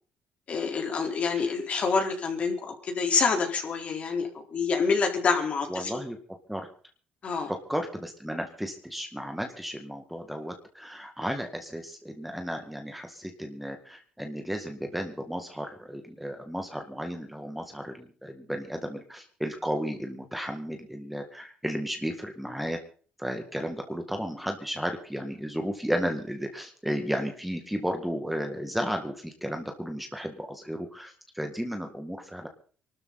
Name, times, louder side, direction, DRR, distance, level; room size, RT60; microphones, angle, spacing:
voice 1, 0.5-6.0 7.2-7.5, left 5 dB, 45° left, 3 dB, 4.3 m, -27 dB
voice 2, 5.7-6.2 6.5-6.7 7.5-22.8 23.2-32.5, equal, 5° right, 4 dB, 2.0 m, -34 dB
24.0 x 13.0 x 4.2 m, 0.43 s
cardioid pair, 110°, 3 cm